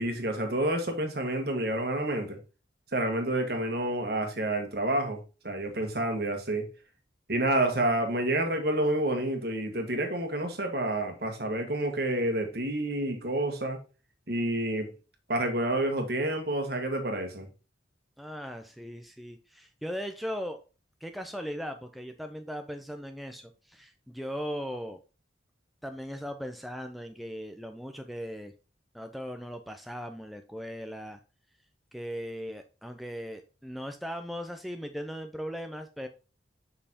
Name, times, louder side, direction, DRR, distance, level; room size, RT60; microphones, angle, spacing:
voice 1, 0.0-2.4 2.9-6.7 7.3-13.8 14.3-14.9 15.3-17.5, right 1 dB, 55° right, 1.5 m, -29 dB
voice 2, 18.2-20.6 21.0-25.0 25.8-28.5 28.9-31.2 31.9-36.1, equal, ahead, 0.5 m, -38 dB
6.5 x 5.5 x 2.8 m
head